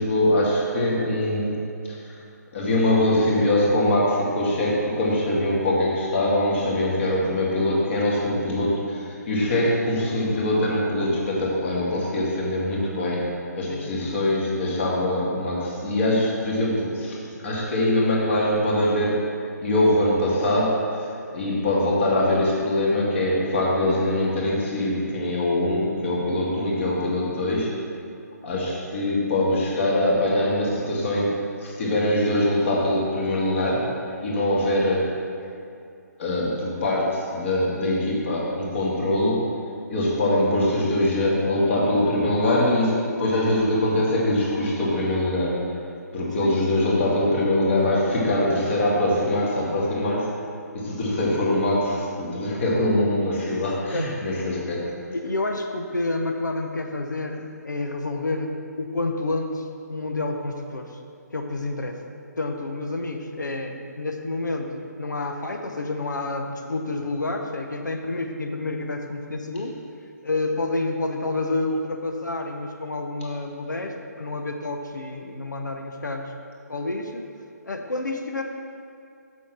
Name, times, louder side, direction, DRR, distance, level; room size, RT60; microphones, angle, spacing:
voice 1, 0.0-1.5 1.8-2.1 2.5-19.3 19.6-27.7 28.4-33.8 34.2-35.1 36.2-39.5 39.9-45.6 46.1-50.3 50.7-54.8, left 1 dB, 45° left, -4 dB, 2.3 m, -23 dB
voice 2, 13.7-14.3 46.4-46.6 53.9-54.1 55.1-61.0 61.3-62.0 62.4-69.8 70.2-76.3 76.7-77.2 77.6-78.4, left 2 dB, 80° left, 4 dB, 0.8 m, -29 dB
7.1 x 6.4 x 5.9 m, 2.4 s
figure-of-eight pair, 145°, 10 cm